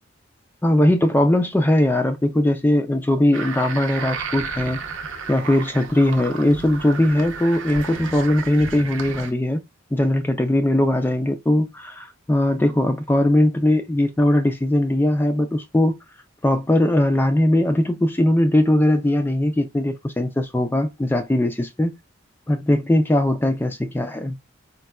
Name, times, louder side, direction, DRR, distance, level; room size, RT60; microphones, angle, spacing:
voice 1, 0.6-4.8 5.3-9.6 9.9-16.0 16.4-22.0 22.5-24.4, left 1 dB, 10° left, 0.3 m, -20 dB
sound 1, 3.3-9.3, right 5 dB, 70° right, 0.7 m, -33 dB
4.1 x 2.2 x 2.2 m
head